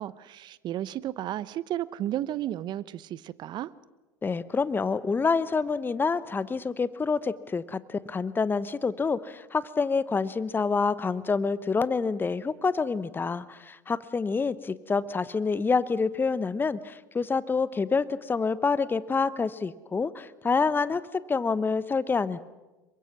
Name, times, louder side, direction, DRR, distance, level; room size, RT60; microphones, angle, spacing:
voice 1, 0.0-3.7, right 12 dB, 45° right, 18 dB, 0.9 m, -33 dB
voice 2, 4.2-22.4, left 4 dB, 20° left, 16 dB, 1.0 m, -27 dB
27.5 x 23.5 x 6.2 m, 1.1 s
hypercardioid pair, 70°, 10 cm